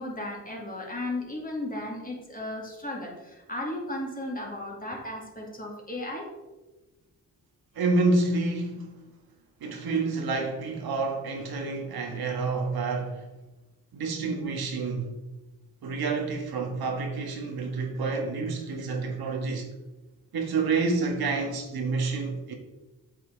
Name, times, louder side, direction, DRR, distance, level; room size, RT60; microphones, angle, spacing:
voice 1, 0.0-6.3, left 1 dB, 25° left, 2.3 m, -35 dB
voice 2, 7.7-9.0 9.6-13.2 13.9-15.1 15.8-19.7 20.3-22.5, right 3 dB, 85° right, 1.5 m, -28 dB
8.2 x 6.6 x 3.9 m
cardioid pair, 80°, 36 cm